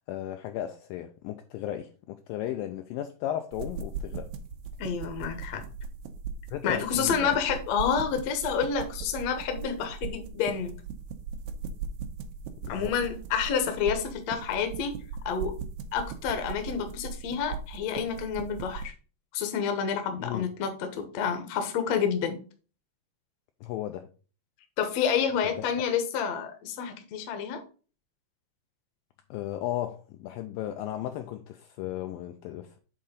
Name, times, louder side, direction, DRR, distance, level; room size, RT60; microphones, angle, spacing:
voice 1, 0.1-4.3 6.5-7.3 12.6-12.9 20.2-20.5 23.6-24.1 29.3-32.8, left 12 dB, 85° left, 2.1 m, -35 dB
sound 1, 3.5-18.9, right 5 dB, 85° right, 2.7 m, -39 dB
voice 2, 4.8-5.6 6.6-10.7 12.7-15.0 15.2-15.5 15.9-18.9 19.3-22.4 24.8-27.6, left 7 dB, 65° left, 1.7 m, -29 dB
7.8 x 3.8 x 5.1 m
omnidirectional pair, 4.6 m